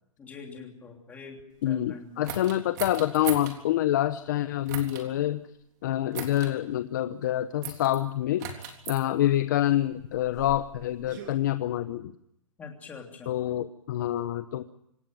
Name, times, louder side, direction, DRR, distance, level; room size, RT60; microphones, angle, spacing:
voice 1, 0.2-1.4 1.6-2.3 12.6-13.4, left 5 dB, 10° left, 2 dB, 3.1 m, -44 dB
voice 2, 1.6-5.4 5.8-12.1 13.3-14.6, left 13 dB, 35° left, 12 dB, 0.8 m, -27 dB
sound 1, 2.2-3.6 4.7-5.1 6.1-6.5 7.6-8.0 8.4-9.0 9.9-11.3, right 7 dB, 35° right, 3.6 m, -38 dB
26.5 x 16.0 x 9.1 m, 0.81 s
hypercardioid pair, 170°, 17 cm